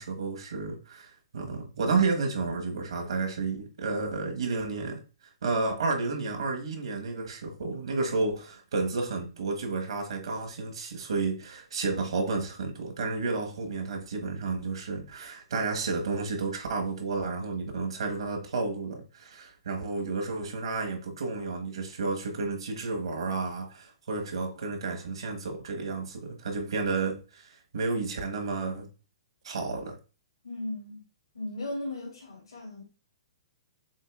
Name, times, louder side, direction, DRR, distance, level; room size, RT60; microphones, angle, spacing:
voice 1, 0.0-5.0 5.4-28.9 29.4-30.0, right 3 dB, 80° right, 1.3 m, -31 dB
voice 2, 30.4-31.0 31.3-32.8, left 1 dB, 90° left, 2.6 m, -36 dB
7.3 x 2.8 x 2.4 m
hypercardioid pair, 130°, 3 cm